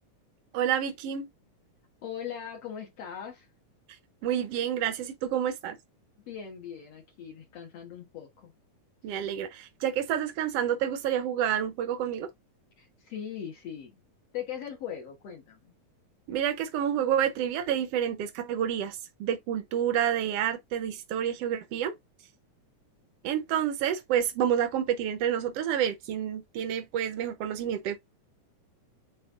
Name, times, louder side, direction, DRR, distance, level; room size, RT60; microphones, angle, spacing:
voice 1, 0.5-1.3 4.2-5.8 9.0-12.3 16.3-21.9 23.2-28.0, right 9 dB, 85° right, 1.3 m, -29 dB
voice 2, 2.0-3.5 6.3-8.5 12.8-14.0 14.3-15.7, left 9 dB, 55° left, 2.1 m, -40 dB
9.1 x 4.3 x 2.5 m
omnidirectional pair, 3.8 m